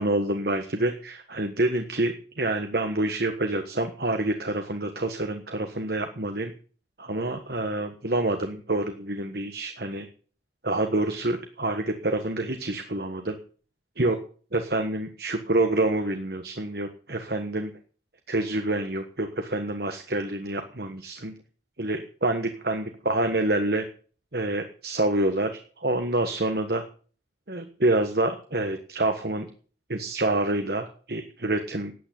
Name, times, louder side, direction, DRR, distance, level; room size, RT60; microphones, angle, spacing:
voice 1, 0.0-6.5 7.0-10.1 10.6-13.3 14.0-14.2 14.5-17.7 18.3-21.3 21.8-23.8 24.3-25.5 25.8-26.8 27.5-29.5 29.9-31.9, right 2 dB, 60° right, 6 dB, 1.5 m, -27 dB
12.5 x 9.0 x 8.6 m, 0.42 s
head